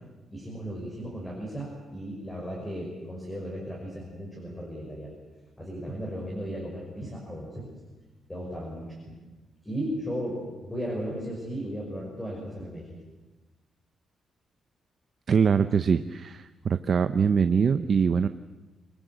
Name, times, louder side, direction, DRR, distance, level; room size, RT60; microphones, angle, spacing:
voice 1, 0.3-5.2 5.6-7.7 8.3-9.2 9.6-12.9, equal, 10° left, -1 dB, 5.9 m, -35 dB
voice 2, 15.3-18.3, right 6 dB, 40° right, 10 dB, 0.7 m, -23 dB
26.0 x 21.5 x 8.0 m, 1.2 s
cardioid pair, 155°, 0 cm